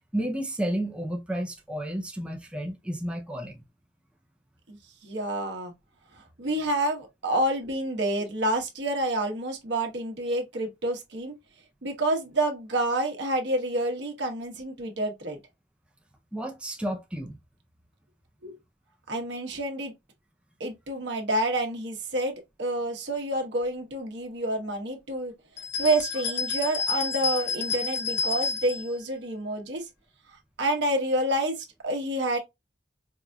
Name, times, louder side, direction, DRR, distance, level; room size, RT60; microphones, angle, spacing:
voice 1, 0.1-3.6 16.3-17.4, right 1 dB, 5° right, 0.5 m, -32 dB
voice 2, 4.7-5.7 6.2-11.3 11.8-15.4 18.4-18.6 19.1-19.9 20.6-25.3 25.8-29.8 30.6-32.4, right 1 dB, 70° right, 1.0 m, -28 dB
sound 1, 25.6-28.9, left 4 dB, 70° left, 0.7 m, -30 dB
4.7 x 2.6 x 2.2 m
head